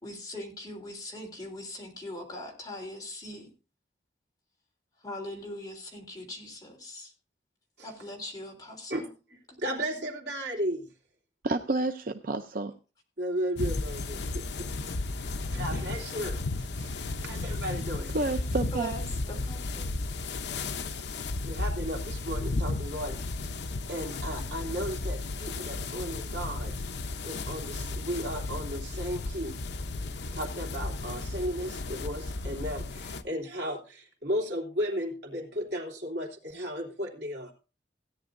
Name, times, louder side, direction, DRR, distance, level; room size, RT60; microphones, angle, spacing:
voice 1, 0.0-3.5 5.0-7.1 7.8-9.1 9.7-9.9 18.7-19.9, left 1 dB, 20° left, 0 dB, 3.3 m, -41 dB
voice 2, 8.9-10.9 13.2-14.2 14.6-14.7 15.5-18.1 21.1-23.2 23.9-26.7 27.2-29.6 30.3-37.5, equal, 65° right, 0 dB, 3.0 m, -35 dB
voice 3, 11.4-12.7 18.1-18.9, right 2 dB, 50° right, 7 dB, 0.6 m, -29 dB
sound 1, 13.6-33.2, left 2 dB, 70° left, 0.7 m, -34 dB
16.5 x 10.0 x 2.6 m, 0.32 s
head